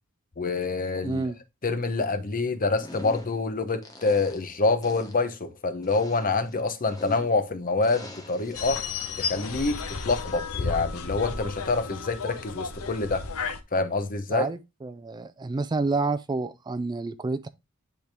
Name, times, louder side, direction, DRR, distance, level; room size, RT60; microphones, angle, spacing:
voice 1, 0.4-1.2 1.6-8.9 9.2-13.2 13.7-14.5, left 3 dB, 40° left, 0.9 m, -26 dB
voice 2, 1.0-1.4 14.3-17.5, right 3 dB, 20° right, 0.3 m, -29 dB
sound 1, 2.8-3.5 3.8-4.6 4.8-5.3 5.8-7.5 7.8-8.7 9.3-9.7, left 1 dB, 15° left, 1.1 m, -44 dB
sound 2, 8.5-13.6, left 5 dB, 70° left, 0.9 m, -33 dB
10.5 x 3.6 x 3.4 m
head